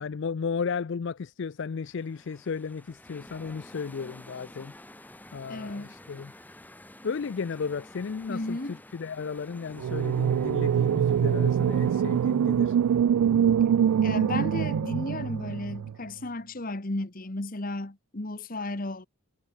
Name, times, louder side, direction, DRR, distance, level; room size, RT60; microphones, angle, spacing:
voice 1, 0.0-6.3 7.0-12.8, left 5 dB, 55° left, 0.4 m, -34 dB
sound 1, 1.7-13.0, left 1 dB, 10° left, 1.4 m, -51 dB
voice 2, 5.5-5.9 8.3-8.7 14.0-19.1, left 2 dB, 40° left, 1.2 m, -34 dB
sound 2, 9.8-15.9, right 8 dB, 85° right, 0.3 m, -24 dB
head